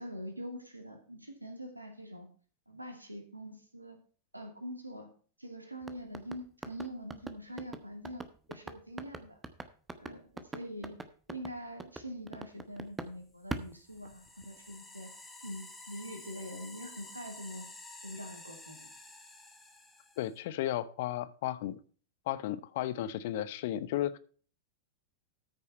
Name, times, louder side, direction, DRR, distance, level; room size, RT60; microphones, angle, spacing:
voice 1, 0.0-2.3 2.7-4.0 4.3-5.1 5.4-9.4 10.0-11.0 11.3-15.1 15.4-17.7 18.0-18.9, equal, 85° right, 5 dB, 2.4 m, -44 dB
sound 1, 5.8-13.2 13.5-14.6, right 3 dB, 10° right, 1.1 m, -42 dB
sound 2, 13.6-20.4, left 2 dB, 10° left, 3.2 m, -51 dB
voice 2, 20.2-21.8 22.3-24.2, left 13 dB, 50° left, 17 dB, 0.9 m, -34 dB
13.5 x 6.8 x 4.2 m, 0.41 s
figure-of-eight pair, 90°, 0 cm